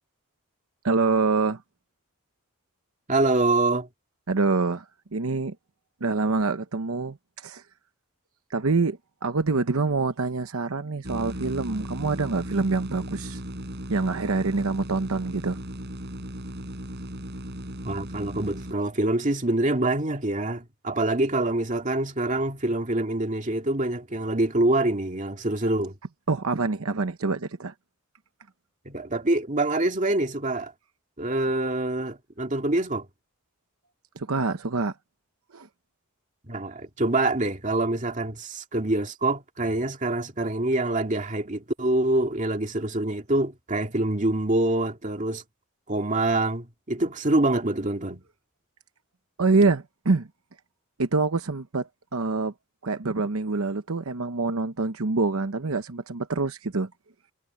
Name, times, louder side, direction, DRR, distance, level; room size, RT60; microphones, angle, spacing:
voice 1, 0.8-1.6 4.3-4.8 5.1-5.5 6.0-7.6 8.5-13.4 13.9-15.6 26.3-27.7 34.2-34.9 35.5-35.7 49.4-50.3 51.0-52.5 52.8-56.9, right 3 dB, 75° right, 0.9 m, -26 dB
voice 2, 3.1-3.9 17.8-25.9 28.9-30.7 31.2-33.1 36.5-45.4 45.9-48.2, right 2 dB, 35° right, 2.3 m, -25 dB
sound 1, 11.0-18.7, equal, 50° right, 5.1 m, -36 dB
head